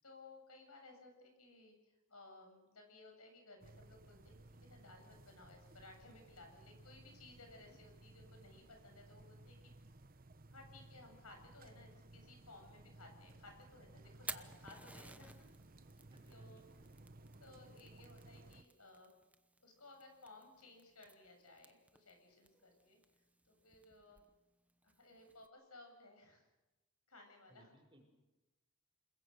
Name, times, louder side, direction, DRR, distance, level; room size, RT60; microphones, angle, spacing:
voice 1, 0.0-4.4 4.6-9.7 10.5-15.5 16.3-16.7 17.4-19.1 19.6-23.0 23.4-24.2 24.8-26.5 27.1-27.7, left 2 dB, 80° left, 4 dB, 7.7 m, -59 dB
sound 1, 3.6-18.6, right 2 dB, 40° right, 1.0 m, -59 dB
Fire, 14.1-25.5, right 2 dB, 5° right, 0.9 m, -56 dB
voice 2, 16.1-16.7 27.5-28.0, right 1 dB, 25° right, 2 dB, 5.6 m, -63 dB
28.5 x 21.0 x 6.5 m, 1.1 s
head